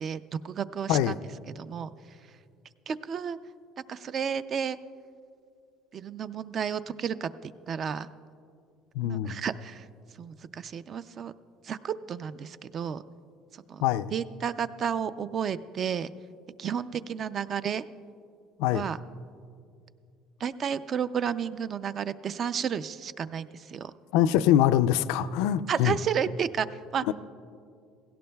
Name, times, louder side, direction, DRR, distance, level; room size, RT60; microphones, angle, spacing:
voice 1, 0.0-1.2 1.6-1.9 2.9-3.4 3.9-4.8 5.9-8.1 9.0-9.9 10.2-11.3 11.6-13.0 13.7-13.8 14.1-16.1 16.6-17.8 18.7-19.0 20.4-23.9 25.7-27.1, right 7 dB, 40° right, 14 dB, 0.4 m, -32 dB
voice 2, 8.9-9.4 13.8-14.1 18.6-18.8 24.1-26.0 27.1-27.2, left 11 dB, 85° left, 13 dB, 0.3 m, -24 dB
17.0 x 16.5 x 2.3 m, 2.4 s
cardioid pair, 125°, 0 cm